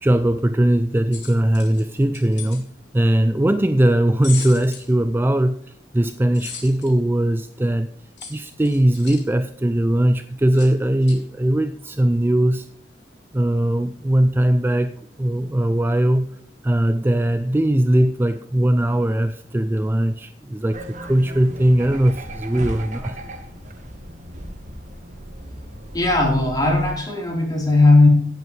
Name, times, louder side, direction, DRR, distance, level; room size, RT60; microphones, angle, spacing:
voice 1, 0.0-2.7 2.9-5.6 5.9-7.9 8.3-12.7 13.3-16.3 16.6-23.2, right 1 dB, 10° right, 10 dB, 0.4 m, -20 dB
sound 1, 1.1-2.6 4.2-4.9 6.3-6.9 8.2-9.2 10.5-10.7 11.0-11.2, left 6 dB, 85° left, 3.4 m, -36 dB
sound 2, 20.7-26.9, right 1 dB, 45° right, 1.5 m, -36 dB
voice 2, 25.9-28.1, left 2 dB, 20° left, -1 dB, 4.2 m, -17 dB
16.5 x 8.2 x 3.3 m, 0.69 s
head